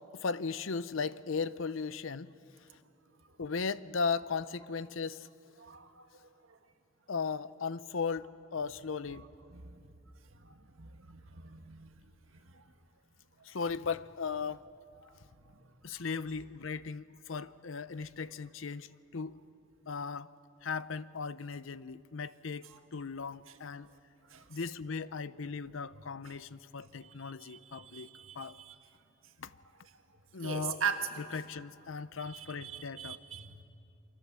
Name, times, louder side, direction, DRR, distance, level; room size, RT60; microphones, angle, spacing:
voice 1, 0.1-2.3 3.4-5.3 7.1-8.3 8.5-9.2 13.5-14.6 15.8-19.3 19.9-20.3 20.6-23.9 24.5-28.1 28.4-28.5 29.4-29.5 30.3-30.8 31.3-33.2, left 5 dB, 75° left, 16 dB, 0.7 m, -37 dB
voice 2, 5.6-6.1 9.1-9.7 10.4-11.9 12.5-12.6 15.0-15.1 15.4-15.6 22.6-22.8 23.5-23.6 24.3-24.4 26.2-26.4 27.0-28.8 30.4-31.3 32.2-33.6, right 7 dB, 80° right, 6 dB, 1.7 m, -41 dB
29.0 x 24.0 x 7.5 m, 2.6 s
head